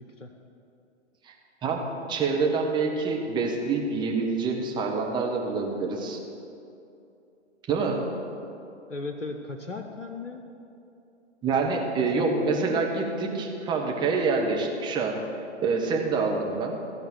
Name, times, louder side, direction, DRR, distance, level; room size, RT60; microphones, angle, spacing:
voice 1, 1.6-6.2 7.7-8.0 11.4-15.2 15.6-16.7, right 4 dB, 10° right, 0 dB, 1.1 m, -26 dB
voice 2, 8.9-10.4 12.2-12.8, left 3 dB, 90° left, 3 dB, 1.0 m, -36 dB
15.5 x 5.2 x 7.8 m, 2.7 s
figure-of-eight pair, 125°, 36 cm